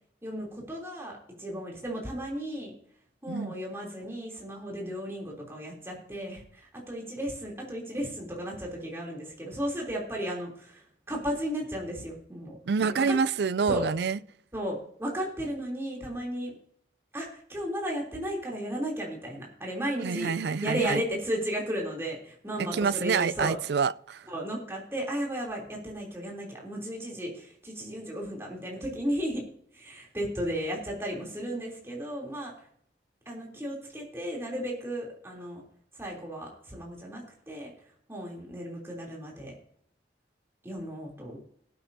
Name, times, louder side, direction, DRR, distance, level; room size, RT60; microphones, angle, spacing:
voice 1, 0.2-2.7 3.2-10.8 11.1-13.2 13.7-13.9 14.5-16.5 17.1-20.3 20.6-23.6 24.3-29.4 29.7-32.5 33.2-35.6 36.0-37.7 38.1-39.5 40.6-41.4, equal, 15° right, 3.3 m, -34 dB
voice 2, 12.7-14.2 20.0-21.0 22.6-24.3, right 5 dB, 75° right, 0.4 m, -27 dB
18.0 x 9.1 x 2.8 m
head